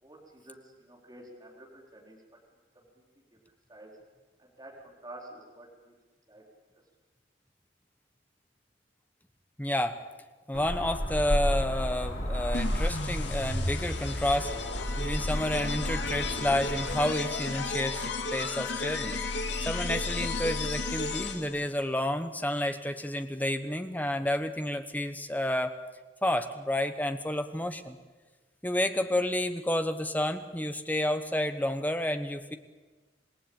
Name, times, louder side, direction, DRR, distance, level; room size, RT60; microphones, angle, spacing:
voice 1, 0.0-2.2 3.0-3.1 3.7-3.9 4.4-5.9 6.3-6.4, right 1 dB, 20° right, -2 dB, 4.1 m, -49 dB
voice 2, 9.6-10.0 10.5-14.5 15.0-19.2 19.6-25.8 26.2-28.0 28.6-32.6, left 1 dB, 10° left, 8 dB, 1.1 m, -30 dB
sound 1, 10.5-17.1, equal, 90° left, 7.2 m, -33 dB
sound 2, 12.5-21.7, left 3 dB, 70° left, 2.5 m, -33 dB
27.0 x 18.5 x 8.8 m, 1.3 s
head